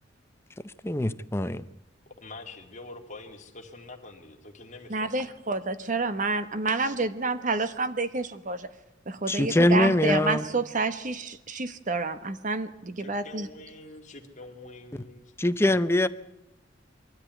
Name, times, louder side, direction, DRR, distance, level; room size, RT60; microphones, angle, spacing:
voice 1, 0.8-1.6 9.3-10.4 15.4-16.1, left 1 dB, 15° left, 0.6 m, -23 dB
voice 2, 2.1-5.1 13.0-15.3, left 2 dB, 40° left, 2.2 m, -45 dB
voice 3, 4.9-8.7 9.1-13.5, right 3 dB, 45° right, 1.1 m, -29 dB
22.5 x 13.5 x 9.3 m
head